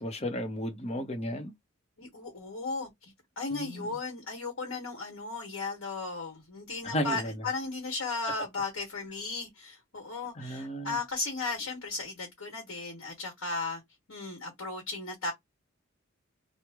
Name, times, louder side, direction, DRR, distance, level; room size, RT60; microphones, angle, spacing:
voice 1, 0.0-1.5 3.5-3.9 6.8-7.3 10.4-11.0, equal, 30° left, 0.8 m, -34 dB
voice 2, 2.0-13.8 14.1-15.3, left 3 dB, 75° left, 1.3 m, -36 dB
3.0 x 2.1 x 3.5 m
head